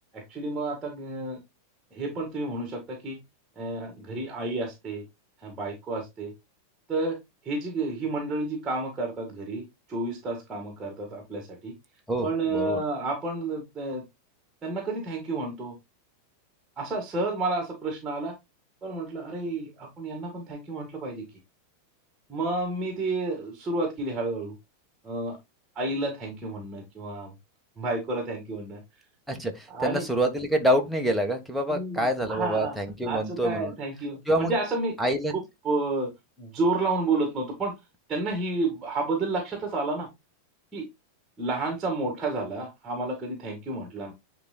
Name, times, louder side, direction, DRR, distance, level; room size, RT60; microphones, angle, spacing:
voice 1, 0.1-1.4 1.9-3.2 3.6-5.1 5.4-6.3 6.9-7.2 7.4-11.7 12.2-14.0 14.6-15.7 16.8-18.3 18.8-21.3 22.3-24.5 25.0-25.4 25.8-27.3 27.8-28.8 29.7-30.1 31.7-32.8 33.0-34.9 35.3-36.1 36.4-37.8 38.1-40.1 40.7-40.9 41.4-44.1, right 2 dB, 15° right, 2.2 m, -30 dB
voice 2, 12.1-12.8 29.3-33.7 34.3-34.5 35.0-35.3, equal, ahead, 1.5 m, -26 dB
10.5 x 3.9 x 2.4 m
figure-of-eight pair, 90°, 0 cm